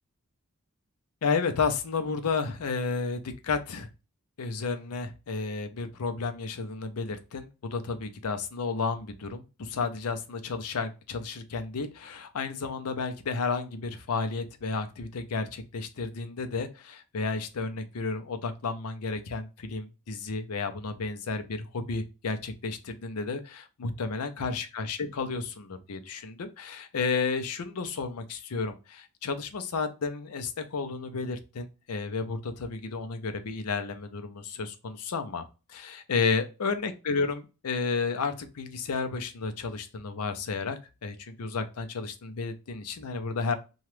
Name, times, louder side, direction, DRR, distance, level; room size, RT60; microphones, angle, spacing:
voice 1, 1.2-3.9 4.4-35.4 35.7-43.6, left 4 dB, 85° left, 8 dB, 0.5 m, -32 dB
2.9 x 2.3 x 3.1 m, 0.30 s
head